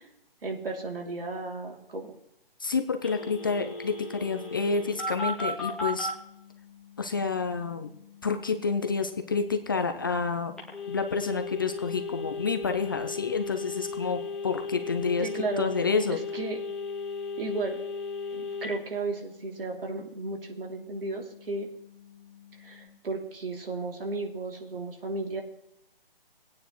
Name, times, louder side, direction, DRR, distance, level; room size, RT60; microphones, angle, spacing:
voice 1, 0.4-2.2 15.2-15.7 16.1-16.6 17.4-17.8 18.3-21.7 22.6-25.4, right 3 dB, 70° right, 0 dB, 2.9 m, -34 dB
voice 2, 2.6-6.1 7.0-7.9 8.2-10.6 10.9-15.3 15.6-16.2, left 4 dB, 25° left, 7 dB, 0.5 m, -29 dB
Telephone, 3.0-6.1 10.6-18.7, left 3 dB, ahead, 0.9 m, -35 dB
sound 1, 4.2-22.9, left 10 dB, 75° left, 2.0 m, -53 dB
18.0 x 9.3 x 3.1 m, 0.78 s
hypercardioid pair, 155°, 29 cm